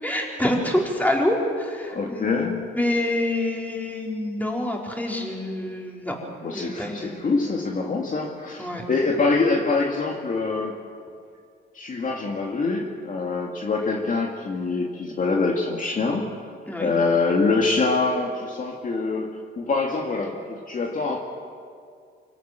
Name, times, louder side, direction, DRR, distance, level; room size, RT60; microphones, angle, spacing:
voice 1, 0.0-6.2 6.5-7.2 8.6-8.8 16.7-16.9, left 1 dB, 10° left, -1 dB, 4.4 m, -26 dB
voice 2, 1.9-2.6 6.4-10.8 11.7-16.4 16.8-19.3 19.6-21.2, left 3 dB, 40° left, 0 dB, 2.1 m, -25 dB
25.0 x 17.0 x 7.6 m, 2.2 s
cardioid pair, 90°, 20 cm